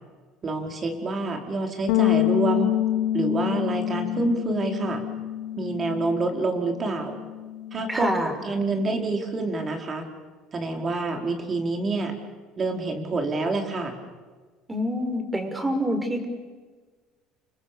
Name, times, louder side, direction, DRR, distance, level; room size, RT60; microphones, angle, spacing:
voice 1, 0.4-2.7 3.1-5.1 5.6-7.2 7.7-10.1 10.5-12.1 12.6-14.0, right 3 dB, 35° right, 4 dB, 5.1 m, -27 dB
Bass guitar, 1.9-8.1, left 14 dB, 75° left, 1.2 m, -27 dB
voice 2, 7.9-8.3 14.7-16.3, equal, 15° right, 7 dB, 5.7 m, -26 dB
29.5 x 27.5 x 7.2 m, 1.4 s
hypercardioid pair, 65°, 0 cm